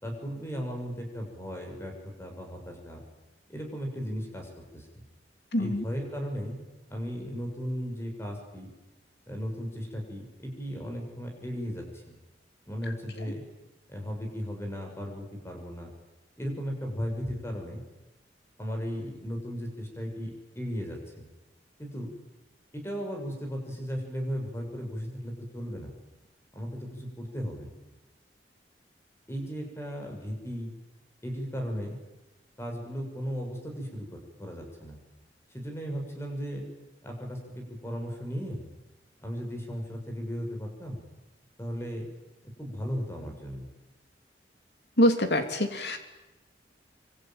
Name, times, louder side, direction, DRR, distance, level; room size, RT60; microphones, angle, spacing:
voice 1, 0.0-3.0 3.5-4.9 5.6-6.6 6.9-8.7 9.3-12.1 12.7-13.4 13.9-15.9 16.4-17.8 18.6-21.3 21.8-22.1 22.7-25.9 26.5-27.7 29.3-30.7 31.2-32.0 32.6-35.0 35.5-36.6 37.0-38.6 39.2-41.0 41.6-42.1 42.6-43.7, equal, 15° left, 2 dB, 6.6 m, -36 dB
voice 2, 5.5-5.8 45.0-46.0, equal, 70° left, 7 dB, 3.2 m, -24 dB
25.0 x 25.0 x 9.1 m, 1.0 s
head